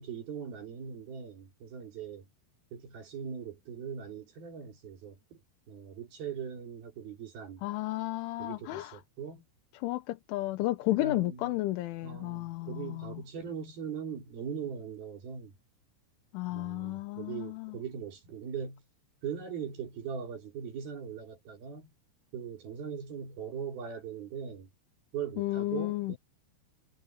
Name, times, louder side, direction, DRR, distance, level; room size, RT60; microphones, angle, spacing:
voice 1, 0.0-2.3 2.7-5.4 5.7-7.7 8.4-9.4 10.9-11.6 12.0-15.5 16.5-18.8 19.2-21.9 22.3-24.7 25.1-26.2, right 7 dB, 50° right, 5.1 m, -40 dB
voice 2, 7.6-9.0 9.8-13.2 16.3-17.8 25.4-26.1, left 18 dB, 80° left, 3.4 m, -33 dB
omnidirectional pair, 5.7 m